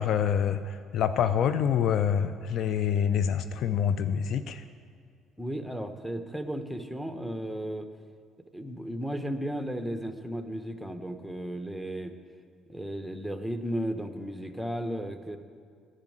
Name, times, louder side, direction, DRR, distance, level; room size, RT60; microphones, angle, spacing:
voice 1, 0.0-4.6, left 8 dB, 60° left, 11 dB, 0.4 m, -26 dB
voice 2, 5.4-7.9 8.5-12.1 12.7-15.4, equal, ahead, 7 dB, 1.0 m, -34 dB
10.5 x 6.4 x 8.7 m, 2.2 s
hypercardioid pair, 50°, 0 cm